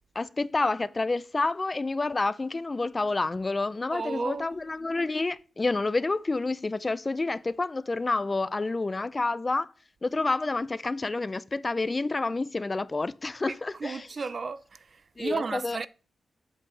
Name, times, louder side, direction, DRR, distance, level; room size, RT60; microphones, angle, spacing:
voice 1, 0.2-9.7 10.0-14.0 15.2-15.8, left 3 dB, 25° left, 0.3 m, -29 dB
voice 2, 3.9-4.6 13.5-15.9, right 4 dB, 45° right, 0.5 m, -34 dB
8.3 x 7.6 x 3.3 m
wide cardioid pair, 110°, 0 cm